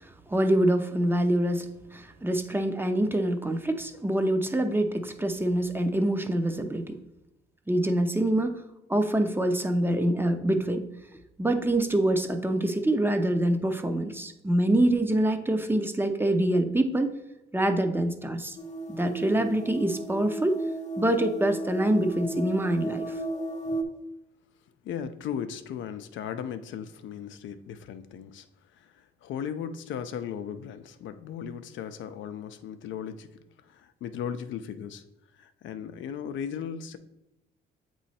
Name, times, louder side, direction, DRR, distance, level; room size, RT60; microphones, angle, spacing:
voice 1, 0.3-7.0 7.7-8.6 8.9-10.8 11.4-17.1 17.5-18.6 18.9-20.6 21.0-23.1, right 1 dB, 10° right, 7 dB, 0.5 m, -25 dB
sound 1, 18.6-23.8, right 2 dB, 35° left, 0.7 m, -34 dB
voice 2, 24.8-28.5 28.7-35.0 35.3-37.0, left 8 dB, 75° left, 9 dB, 0.5 m, -37 dB
7.5 x 3.1 x 4.2 m, 0.94 s
cardioid pair, 90°, 20 cm